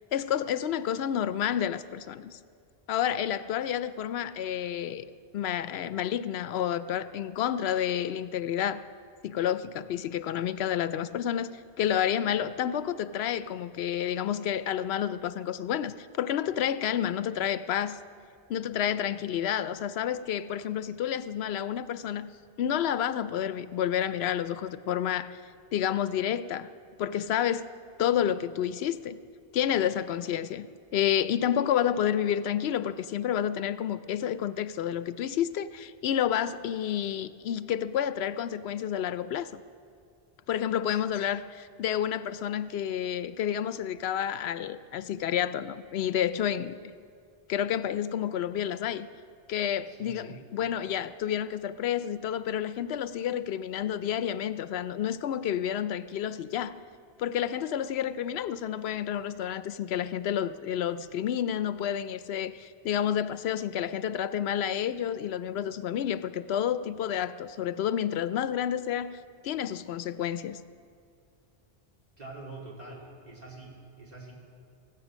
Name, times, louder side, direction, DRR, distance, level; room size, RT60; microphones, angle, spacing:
voice 1, 0.1-2.4 2.9-5.0 5.3-8.8 9.2-11.5 11.8-18.0 18.5-22.3 22.6-25.3 25.7-26.7 27.0-27.7 28.0-29.2 29.5-39.6 40.5-46.8 47.5-49.1 49.5-56.7 57.2-69.2 69.4-70.6, left 10 dB, 85° left, 14 dB, 0.8 m, -30 dB
voice 2, 49.9-50.4 72.2-74.3, right 3 dB, 40° right, -3 dB, 3.1 m, -45 dB
15.5 x 15.0 x 6.2 m, 2.3 s
omnidirectional pair, 1.0 m